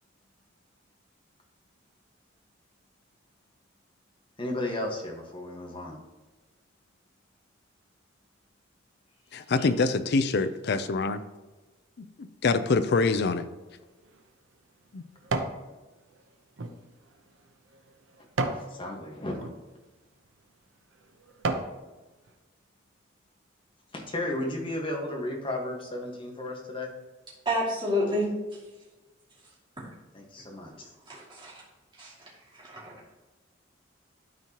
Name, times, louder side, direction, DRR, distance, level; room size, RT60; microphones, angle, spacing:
voice 1, 4.4-6.0 9.6-9.7 18.5-19.5 23.9-26.9 30.1-30.9, left 1 dB, 25° left, 0 dB, 1.4 m, -34 dB
voice 2, 9.3-11.2 12.0-13.5 14.9-15.0, left 3 dB, 55° left, 11 dB, 0.4 m, -25 dB
sound 1, 13.8-15.6 16.1-18.7 19.3-19.6 20.2-20.4 20.9-21.8 22.3-22.4, right 3 dB, 85° right, 0.7 m, -34 dB
voice 3, 27.4-28.6 31.1-31.5 32.0-33.1, left 1 dB, 25° right, -6 dB, 2.6 m, -30 dB
12.5 x 4.5 x 2.9 m, 1.2 s
head